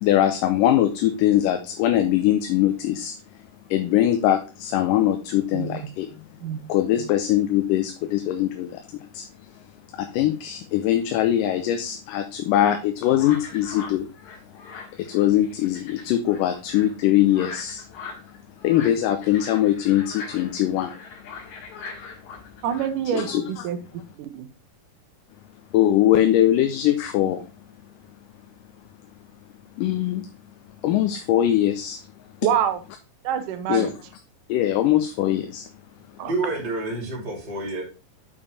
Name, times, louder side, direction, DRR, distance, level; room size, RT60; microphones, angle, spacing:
voice 1, 0.0-3.1 3.7-6.1 6.7-9.3 10.0-14.1 15.0-17.8 18.6-20.9 23.2-23.4 25.7-27.4 29.8-30.3 30.8-32.0 33.7-33.9 34.5-35.7, left 12 dB, 80° left, 7 dB, 2.2 m, -21 dB
voice 2, 5.5-5.9 6.4-6.6 22.6-23.8 24.2-24.5 32.4-32.8 33.2-34.0 36.2-36.4, right 9 dB, 75° right, 9 dB, 2.2 m, -26 dB
sound 1, 13.2-22.9, left 4 dB, 65° left, 3.0 m, -41 dB
voice 3, 36.2-37.8, right 2 dB, 20° right, -2 dB, 2.0 m, -28 dB
7.0 x 5.3 x 4.1 m, 0.32 s
omnidirectional pair, 3.9 m